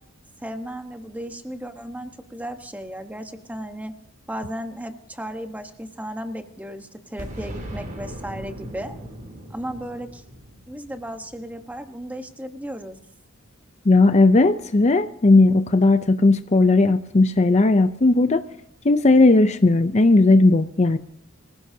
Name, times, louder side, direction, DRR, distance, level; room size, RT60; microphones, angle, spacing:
voice 1, 0.4-3.9 4.3-9.0 9.5-10.2 10.7-13.0, equal, 10° right, 6 dB, 1.2 m, -35 dB
Boom, 7.2-11.9, equal, 40° right, 3.1 m, -38 dB
voice 2, 13.9-18.4 18.8-21.0, left 2 dB, 35° left, 10 dB, 0.6 m, -16 dB
25.0 x 16.0 x 2.8 m, 0.75 s
head